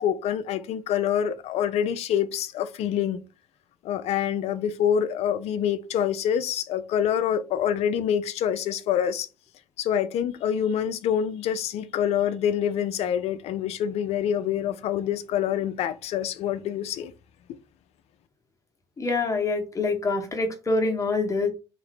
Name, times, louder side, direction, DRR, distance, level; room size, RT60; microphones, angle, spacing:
voice 1, 0.0-3.2 3.8-9.3 9.8-17.1 17.5-17.6, left 9 dB, 55° left, 0.4 m, -26 dB
voice 2, 19.0-21.5, left 3 dB, 25° left, 1.0 m, -25 dB
2.8 x 2.5 x 3.2 m
hypercardioid pair, 55°, 13 cm